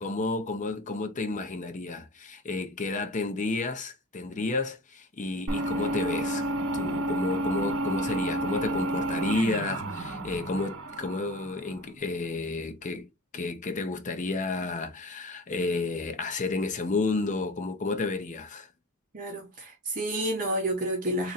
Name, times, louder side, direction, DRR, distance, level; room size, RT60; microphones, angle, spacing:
voice 1, 0.0-6.5 6.7-13.1 13.3-18.7, left 3 dB, 35° left, 0.6 m, -31 dB
sound 1, 5.5-11.8, right 1 dB, 85° right, 0.9 m, -31 dB
voice 2, 19.1-21.3, right 1 dB, 40° right, 0.9 m, -30 dB
3.1 x 2.5 x 4.0 m
head